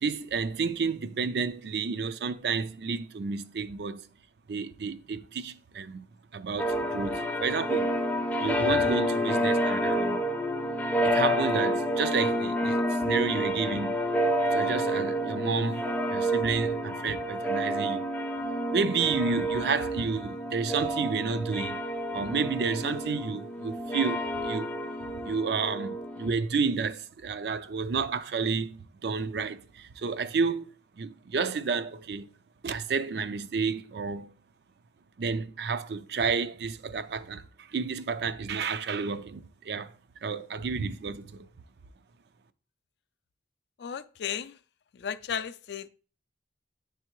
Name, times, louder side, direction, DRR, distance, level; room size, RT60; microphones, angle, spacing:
voice 1, 0.0-4.1 4.5-6.1 6.3-7.9 8.4-10.2 11.0-14.0 14.5-15.8 16.1-18.0 18.7-21.8 22.1-24.8 25.2-30.7 31.0-32.3 32.6-34.3 35.2-39.9 40.2-41.5, right 5 dB, 65° right, 0.4 m, -31 dB
sound 1, 6.6-26.3, equal, 10° left, 0.4 m, -29 dB
voice 2, 43.8-44.5 45.0-45.9, left 8 dB, 70° left, 0.4 m, -34 dB
9.7 x 3.4 x 3.0 m
head